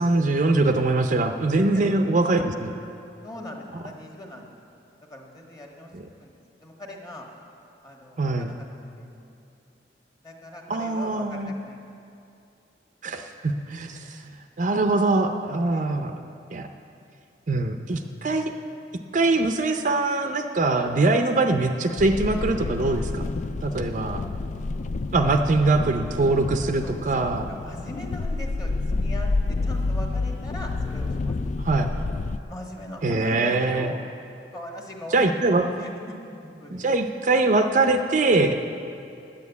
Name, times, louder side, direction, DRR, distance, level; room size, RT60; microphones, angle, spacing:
voice 1, 0.0-2.7 5.9-6.1 8.2-8.5 10.7-11.5 13.0-14.2 14.6-16.1 16.5-16.7 17.5-18.5 19.1-23.3 23.6-24.2 25.1-27.5 31.6-31.9 33.0-33.9 35.1-35.6 36.7-38.7, right 2 dB, 45° right, 6 dB, 0.5 m, -22 dB
voice 2, 1.7-2.1 3.2-4.5 5.1-5.9 6.2-6.3 6.6-7.3 7.8-9.2 10.2-11.9 15.7-15.9 25.0-25.2 25.6-25.8 26.8-28.7 29.0-31.3 32.5-34.0 34.5-36.9, left 1 dB, 20° left, 0 dB, 1.4 m, -41 dB
sound 1, 22.0-32.4, left 3 dB, 40° left, 0.3 m, -29 dB
10.0 x 9.5 x 8.2 m, 2.6 s
head